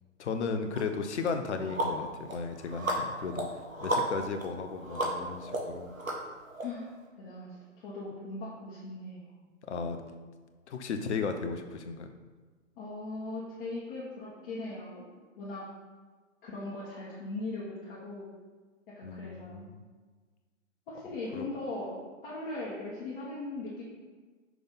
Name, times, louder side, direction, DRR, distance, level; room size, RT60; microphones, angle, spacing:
voice 1, 0.2-3.5 3.8-5.9 9.7-10.0 10.7-12.1 19.0-19.8 21.3-21.5, left 5 dB, 60° left, 7 dB, 0.9 m, -35 dB
sound 1, 0.7-0.8 1.3-6.6, right 1 dB, 85° right, 1.6 m, -34 dB
voice 2, 7.2-9.3 12.8-15.0 15.4-15.6 16.4-18.3 19.0-19.6 20.9-23.8, left 2 dB, 40° left, -8 dB, 1.8 m, -39 dB
6.3 x 3.4 x 5.6 m, 1.4 s
figure-of-eight pair, 120°, 39 cm